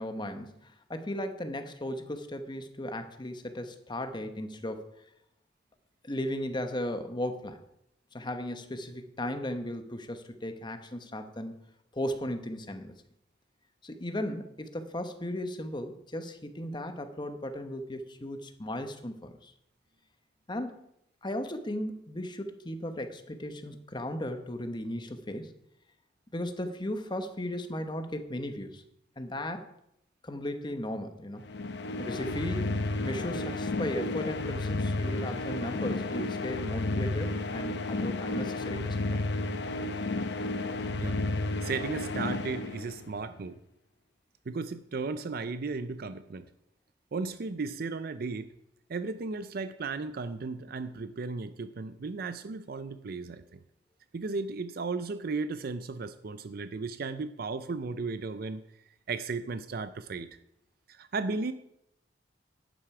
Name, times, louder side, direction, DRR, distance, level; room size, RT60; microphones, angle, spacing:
voice 1, 0.0-4.9 6.0-7.6 8.1-11.5 11.9-12.9 13.8-19.5 20.5-20.9 21.2-25.5 26.3-28.8 29.2-29.7 30.2-31.5 32.0-39.2, left 1 dB, 25° left, 7 dB, 1.0 m, -36 dB
sound 1, 31.4-43.3, left 2 dB, 65° left, 0.8 m, -32 dB
voice 2, 41.6-43.6 44.5-46.5 47.1-48.5 48.9-53.6 54.1-58.6 59.1-60.3 60.9-61.5, right 4 dB, 55° right, 12 dB, 0.5 m, -35 dB
11.5 x 9.0 x 4.8 m, 0.78 s
head